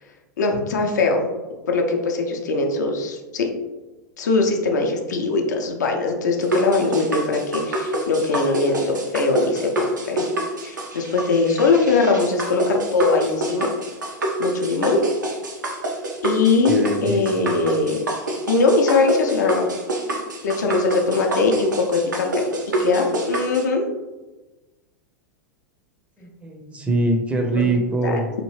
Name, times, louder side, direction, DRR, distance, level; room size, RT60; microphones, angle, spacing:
voice 1, 0.4-1.3 1.7-3.5 4.2-10.3 10.6-13.7 14.4-15.0 16.2-18.0 18.5-19.6 20.4-22.5 22.8-23.8 27.6-27.7 28.0-28.2, left 3 dB, 70° left, 2 dB, 0.5 m, -21 dB
sound 1, 6.4-23.6, right 1 dB, 85° right, 0.6 m, -27 dB
voice 2, 16.7-17.6 26.2-28.3, right 2 dB, 15° right, 1 dB, 0.5 m, -23 dB
2.9 x 2.6 x 3.1 m, 1.1 s
figure-of-eight pair, 90°, 10 cm